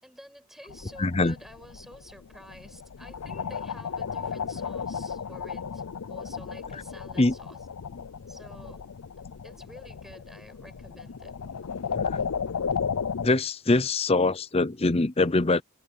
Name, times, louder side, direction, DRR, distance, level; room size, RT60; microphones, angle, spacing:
voice 1, 0.0-5.8 6.1-7.7 8.3-8.8 9.4-11.4 12.1-12.4, equal, ahead, 6.2 m, -50 dB
sound 1, 0.7-13.3, left 6 dB, 75° left, 0.5 m, -34 dB
voice 2, 1.0-1.3 7.2-7.3 12.0-12.2 13.2-15.6, left 2 dB, 25° left, 0.6 m, -23 dB
head